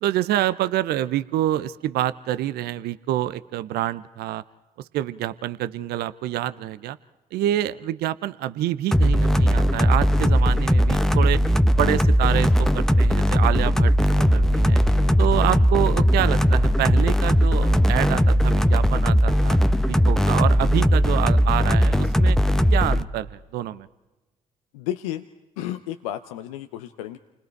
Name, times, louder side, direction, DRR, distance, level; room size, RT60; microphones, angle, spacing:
voice 1, 0.0-4.4 4.9-7.0 7.3-11.4 11.7-13.9 14.3-14.8 15.2-19.6 19.9-22.4 22.7-23.9, right 13 dB, 65° right, 16 dB, 0.6 m, -27 dB
sound 1, 8.9-23.0, equal, ahead, 0.9 m, -19 dB
voice 2, 24.7-25.2 25.6-27.2, left 12 dB, 80° left, 9 dB, 0.6 m, -32 dB
29.0 x 20.0 x 4.6 m, 1.1 s
hypercardioid pair, 45°, 17 cm